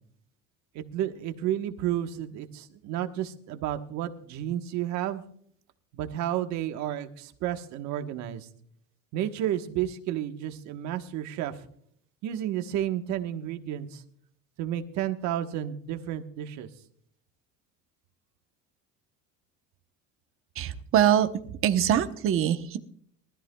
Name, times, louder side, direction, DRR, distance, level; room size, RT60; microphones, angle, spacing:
voice 1, 0.7-5.2 5.9-8.5 9.1-11.7 12.2-14.0 14.6-16.7, right 11 dB, 65° right, 7 dB, 1.3 m, -31 dB
voice 2, 20.6-21.3 21.6-22.8, right 10 dB, 45° right, 8 dB, 1.0 m, -23 dB
22.5 x 13.5 x 2.3 m, 0.63 s
cardioid pair, 150°, 31 cm